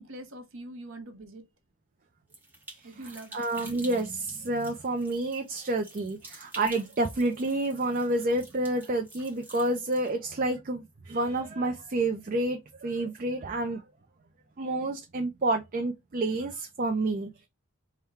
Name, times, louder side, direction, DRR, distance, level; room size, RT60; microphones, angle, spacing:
voice 1, 0.0-1.5 2.8-3.4 6.3-6.4, right 1 dB, 65° right, 0.8 m, -43 dB
sound 1, 2.3-10.1, right 2 dB, 10° right, 0.8 m, -49 dB
voice 2, 3.3-13.8 14.6-17.5, right 2 dB, 40° right, 0.4 m, -29 dB
3.5 x 2.2 x 4.3 m
head